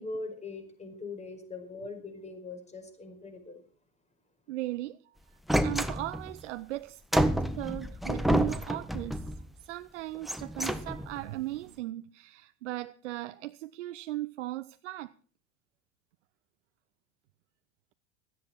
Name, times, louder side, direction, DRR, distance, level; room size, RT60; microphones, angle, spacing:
voice 1, 0.0-3.6, left 3 dB, 20° left, 5.0 m, -41 dB
voice 2, 4.5-5.0 5.6-9.2 9.6-15.1, right 16 dB, 65° right, 0.8 m, -37 dB
sound 1, 5.5-6.4 7.1-9.4 10.1-11.2, right 1 dB, ahead, 1.4 m, -29 dB
17.0 x 13.0 x 4.5 m
figure-of-eight pair, 75°, 38 cm